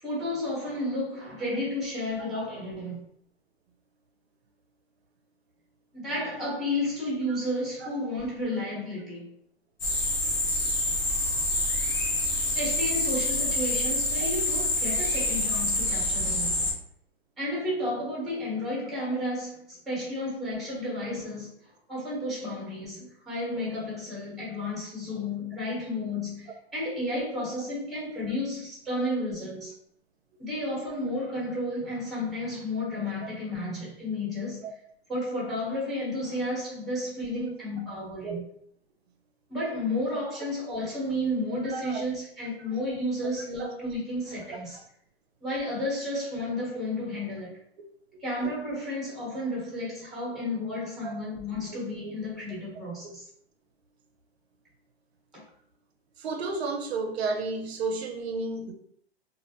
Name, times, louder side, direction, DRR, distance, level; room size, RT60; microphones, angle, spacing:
voice 1, 0.0-3.0 5.9-9.3 12.5-16.7 17.4-21.5 21.9-29.7 30.4-34.7 35.1-38.4 39.5-44.8 45.4-47.6 48.2-53.3, left 1 dB, ahead, 0.8 m, -32 dB
sound 1, 9.8-16.7, left 1 dB, 25° left, 0.3 m, -27 dB
voice 2, 41.7-42.0 43.6-43.7 51.0-51.1 52.0-52.1 56.2-58.7, right 3 dB, 75° right, 0.5 m, -32 dB
2.4 x 2.0 x 2.7 m
hypercardioid pair, 145°, 32 cm